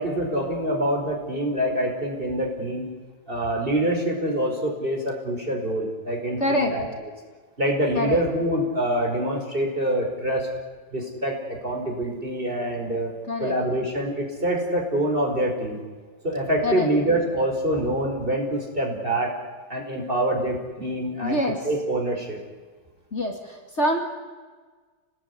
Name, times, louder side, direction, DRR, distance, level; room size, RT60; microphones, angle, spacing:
voice 1, 0.0-2.9 3.3-6.9 7.6-10.5 10.9-13.1 13.4-15.8 16.2-19.3 19.7-21.4 21.7-22.4, right 1 dB, 30° right, 0 dB, 5.5 m, -25 dB
voice 2, 6.4-6.8 7.9-8.2 13.3-13.6 16.6-16.9 21.2-21.6 23.1-24.0, left 1 dB, 40° left, 3 dB, 2.8 m, -25 dB
27.5 x 20.0 x 9.9 m, 1.4 s
omnidirectional pair, 2.0 m